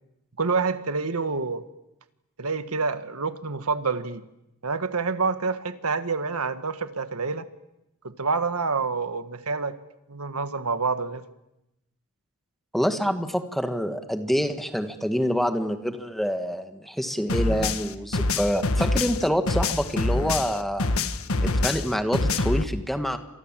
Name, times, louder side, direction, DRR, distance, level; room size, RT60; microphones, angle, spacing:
voice 1, 0.4-1.6 2.4-4.2 4.6-7.5 8.0-9.8 10.1-11.2, right 4 dB, 75° right, 10 dB, 1.5 m, -27 dB
voice 2, 12.7-20.9 21.4-23.2, equal, ahead, 7 dB, 1.6 m, -26 dB
sound 1, 17.3-20.5 20.8-22.6, left 2 dB, 65° left, 1.5 m, -25 dB
29.5 x 26.5 x 7.5 m, 0.90 s
head